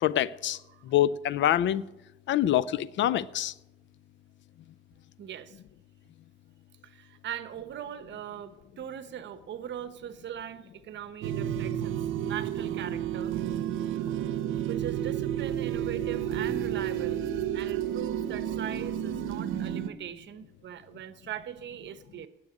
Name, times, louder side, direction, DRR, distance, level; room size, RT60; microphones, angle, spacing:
voice 1, 0.0-0.6 0.9-1.8 2.3-3.5, left 12 dB, 70° left, 0.5 m, -25 dB
voice 2, 5.2-5.6 6.8-12.0 12.2-13.4 14.7-17.2 17.5-22.3, right 10 dB, 65° right, 1.0 m, -40 dB
sound 1, 11.2-19.9, right 10 dB, 90° right, 0.8 m, -31 dB
9.7 x 7.8 x 9.2 m
cardioid pair, 90°, 20 cm